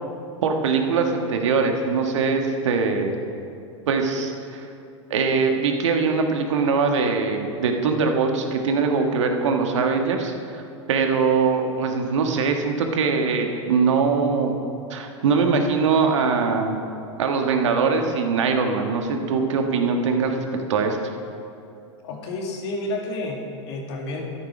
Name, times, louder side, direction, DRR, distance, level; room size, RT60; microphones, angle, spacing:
voice 1, 0.4-3.1 3.9-4.6 5.1-10.3 10.9-14.5 14.9-16.7 17.2-21.0, right 5 dB, 70° right, 4 dB, 1.5 m, -22 dB
voice 2, 22.0-24.4, left 2 dB, 60° left, 1 dB, 2.3 m, -30 dB
12.5 x 10.5 x 5.0 m, 2.6 s
hypercardioid pair, 95°, 16 cm